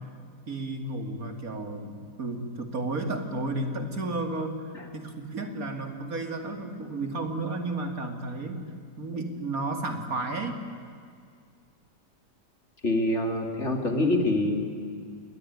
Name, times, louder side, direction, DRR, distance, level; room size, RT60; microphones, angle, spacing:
voice 1, 0.5-8.7 9.0-10.6, right 2 dB, 55° right, 5 dB, 2.8 m, -32 dB
voice 2, 12.8-14.8, left 1 dB, 45° left, 3 dB, 3.0 m, -26 dB
28.5 x 20.5 x 9.7 m, 2.2 s
omnidirectional pair, 1.8 m